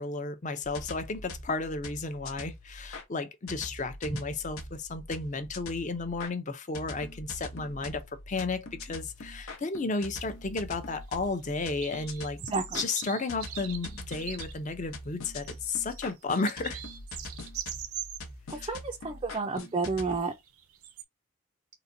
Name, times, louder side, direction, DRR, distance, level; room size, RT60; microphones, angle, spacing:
voice 1, 0.0-12.4 12.7-16.8 18.6-18.7, left 3 dB, 35° left, 0.5 m, -33 dB
sound 1, 0.6-3.0 3.5-6.3 6.7-20.2, left 2 dB, 75° left, 0.9 m, -43 dB
sound 2, 11.0-11.3 11.6-14.6 15.4-18.2 19.5-19.9 20.3-21.0, right 10 dB, 85° right, 0.6 m, -41 dB
voice 2, 12.4-12.8 18.5-20.3, right 3 dB, 25° right, 0.3 m, -31 dB
3.9 x 2.2 x 2.6 m
head